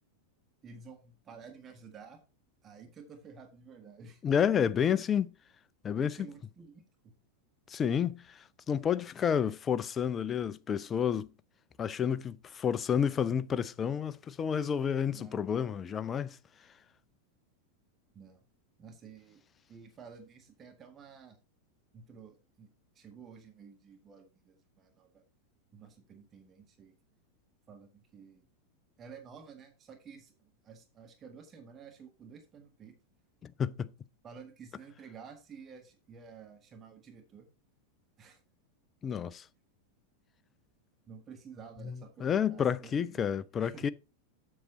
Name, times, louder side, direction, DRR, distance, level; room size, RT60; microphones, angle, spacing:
voice 1, 0.6-2.2 2.6-4.2 5.9-7.1 15.1-15.4 18.1-18.4 18.8-19.4 19.7-21.4 21.9-22.7 22.9-25.2 25.7-26.9 27.7-28.4 29.0-32.9 34.2-37.5 38.2-38.4 41.1-43.3 43.6-43.9, right 6 dB, 25° right, 1.6 m, -52 dB
voice 2, 4.2-5.3 5.8-6.3 7.7-11.3 11.8-16.4 33.4-33.9 39.0-39.4 41.8-43.9, left 8 dB, 25° left, 0.4 m, -30 dB
7.7 x 6.6 x 4.1 m
figure-of-eight pair, 90°, 0 cm